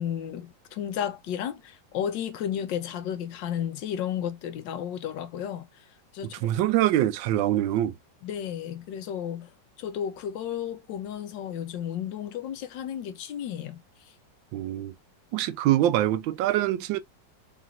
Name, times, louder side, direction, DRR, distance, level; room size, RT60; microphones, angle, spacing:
voice 1, 0.0-5.7 6.1-6.4 8.2-9.5 9.8-13.8, left 9 dB, 75° left, 1.4 m, -33 dB
voice 2, 6.4-7.9 14.5-14.9 15.3-17.0, right 13 dB, 85° right, 1.3 m, -24 dB
4.1 x 4.0 x 2.5 m
omnidirectional pair, 2.0 m